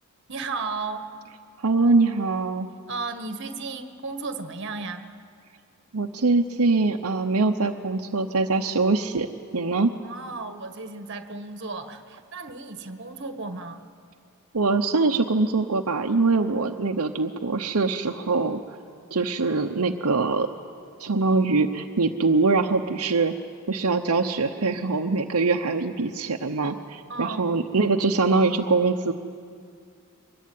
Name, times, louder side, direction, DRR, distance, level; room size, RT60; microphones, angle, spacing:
voice 1, 0.3-1.1 2.9-5.1 10.0-13.8 27.1-27.5, right 3 dB, 55° right, 7 dB, 1.6 m, -34 dB
voice 2, 1.6-2.7 5.9-9.3 9.5-9.9 14.5-18.6 19.1-20.5 21.0-23.3 23.7-29.1, right 3 dB, 80° right, 3 dB, 0.9 m, -23 dB
24.0 x 21.5 x 9.4 m, 2.3 s
head